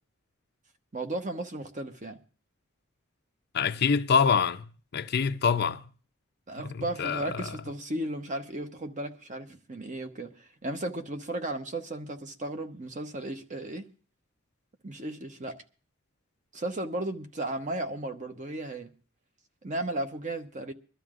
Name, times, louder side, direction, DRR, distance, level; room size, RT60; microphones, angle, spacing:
voice 1, 0.9-2.2 6.5-13.9 14.8-15.5 16.5-18.9 19.6-20.7, right 1 dB, 35° right, 1.0 m, -35 dB
voice 2, 3.5-4.7 4.9-5.8 6.7-7.5, left 6 dB, 50° left, 0.5 m, -25 dB
23.5 x 12.5 x 2.5 m
head